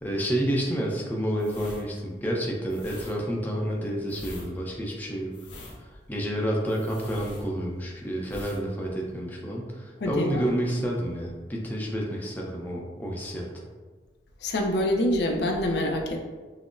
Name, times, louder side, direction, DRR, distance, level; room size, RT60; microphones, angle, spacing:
voice 1, 0.0-5.3 6.1-13.5, equal, 10° left, -2 dB, 0.5 m, -29 dB
sound 1, 1.3-7.9 8.2-8.6 8.9-9.1, left 1 dB, 85° left, 0.8 m, -44 dB
voice 2, 10.0-10.4 14.4-16.2, left 1 dB, 65° left, 2 dB, 0.4 m, -26 dB
5.7 x 2.0 x 2.5 m, 1.3 s
head